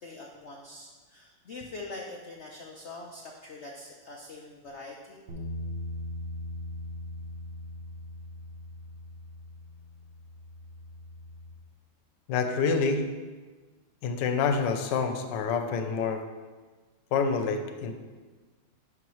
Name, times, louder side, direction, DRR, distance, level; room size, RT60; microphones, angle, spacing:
voice 1, 0.0-5.2, left 2 dB, 90° left, -1 dB, 0.6 m, -43 dB
sound 1, 5.3-11.5, left 1 dB, 45° right, 0.8 m, -40 dB
voice 2, 12.3-13.0 14.0-16.2 17.1-17.9, left 5 dB, 70° left, 6 dB, 1.3 m, -27 dB
11.0 x 5.8 x 3.1 m, 1.4 s
omnidirectional pair, 2.1 m